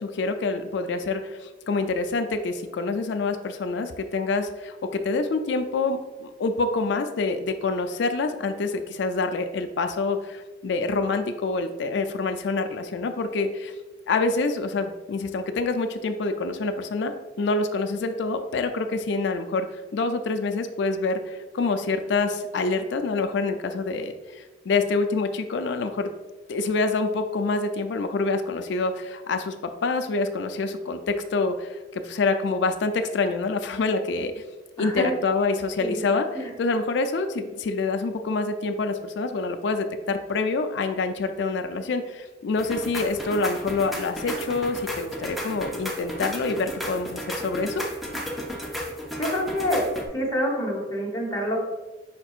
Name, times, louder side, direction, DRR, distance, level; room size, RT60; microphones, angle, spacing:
voice 1, 0.0-13.7 14.1-26.1 26.5-29.5 29.8-34.4 34.8-47.8, left 3 dB, 70° left, 7 dB, 0.4 m, -26 dB
voice 2, 34.8-35.1 35.8-36.1 36.3-36.5 49.2-51.6, equal, 20° left, -2 dB, 1.0 m, -27 dB
sound 1, 42.6-50.1, equal, ahead, 0.7 m, -34 dB
5.1 x 4.4 x 2.4 m, 1.2 s
head